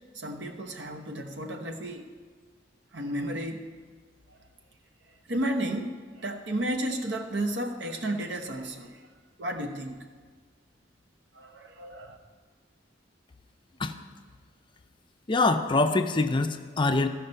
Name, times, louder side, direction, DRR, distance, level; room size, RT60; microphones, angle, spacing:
voice 1, 0.1-2.1 2.9-3.7 4.3-4.4 5.1-9.1 9.4-10.0 11.3-12.2, right 1 dB, 70° right, 4 dB, 1.0 m, -33 dB
voice 2, 15.3-17.1, left 3 dB, 25° left, 7 dB, 0.5 m, -24 dB
14.5 x 5.7 x 5.5 m, 1.5 s
head